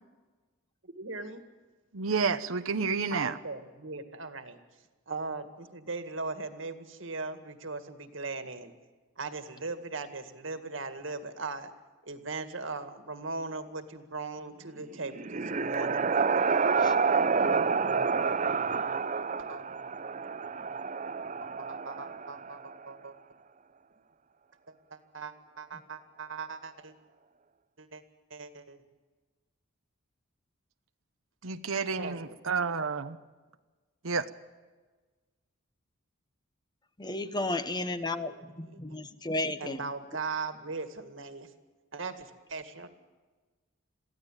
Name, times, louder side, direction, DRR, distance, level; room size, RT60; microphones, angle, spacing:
voice 1, 0.8-1.4 3.1-4.6 5.1-8.7 9.2-11.7 12.0-16.1 19.4-19.6 19.9-20.0 21.4-23.1 24.7-26.9 27.8-28.0 28.3-28.8 32.0-32.4 38.0-39.0 39.6-41.5 41.9-42.9, right 3 dB, 65° right, 9 dB, 2.0 m, -39 dB
voice 2, 1.9-3.4 31.4-33.1 34.0-34.2, right 5 dB, 85° right, 9 dB, 0.9 m, -30 dB
sound 1, 14.9-22.7, right 5 dB, 35° right, 0.6 m, -29 dB
voice 3, 37.0-39.8, left 2 dB, 20° left, 11 dB, 1.0 m, -33 dB
23.0 x 15.5 x 9.1 m, 1.3 s
head